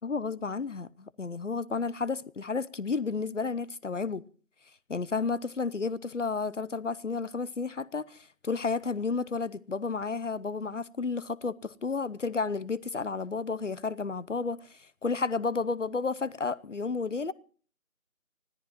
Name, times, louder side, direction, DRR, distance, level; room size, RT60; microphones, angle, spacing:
voice 1, 0.0-4.2 4.9-17.3, left 4 dB, 60° left, 0.7 m, -32 dB
24.5 x 14.5 x 3.0 m
figure-of-eight pair, 160°, 41 cm